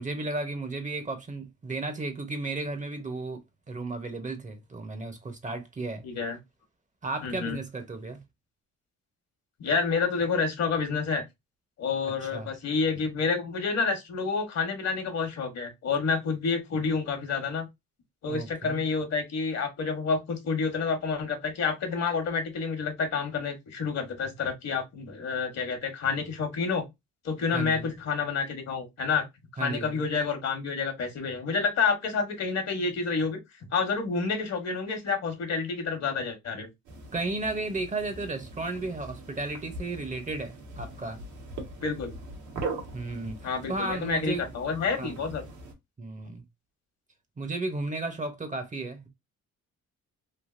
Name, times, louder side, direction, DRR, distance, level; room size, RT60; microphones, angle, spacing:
voice 1, 0.0-3.4 3.7-6.0 7.0-8.2 12.0-12.5 18.3-18.8 27.5-27.9 29.6-30.0 37.1-41.2 42.9-44.4 45.0-45.2 46.0-46.4 47.4-49.1, right 2 dB, 25° right, 0.7 m, -34 dB
voice 2, 6.0-6.4 7.2-7.6 9.6-11.2 11.8-17.7 18.2-26.8 27.2-29.2 29.6-33.4 33.7-36.7 41.8-42.1 43.4-45.4, left 5 dB, 60° left, 1.2 m, -29 dB
sound 1, 36.8-45.7, right 2 dB, 80° right, 1.3 m, -41 dB
3.3 x 2.6 x 2.5 m
cardioid pair, 90°, 30 cm